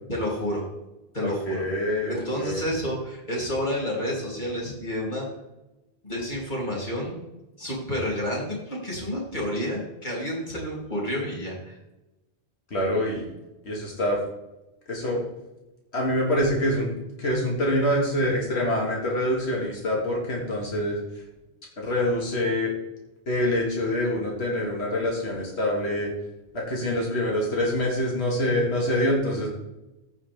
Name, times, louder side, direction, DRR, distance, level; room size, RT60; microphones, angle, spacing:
voice 1, 0.1-0.7 1.1-1.6 2.1-5.3 6.0-7.2 7.6-11.8 13.1-13.2, equal, 45° left, -4 dB, 3.5 m, -30 dB
voice 2, 1.2-2.6 12.7-13.3 13.6-14.2 14.9-15.2 15.9-16.9 17.2-21.0 21.8-22.7 23.3-26.1 26.5-29.5, left 1 dB, 80° left, -2 dB, 2.3 m, -25 dB
14.5 x 6.2 x 3.6 m, 0.98 s
omnidirectional pair, 1.1 m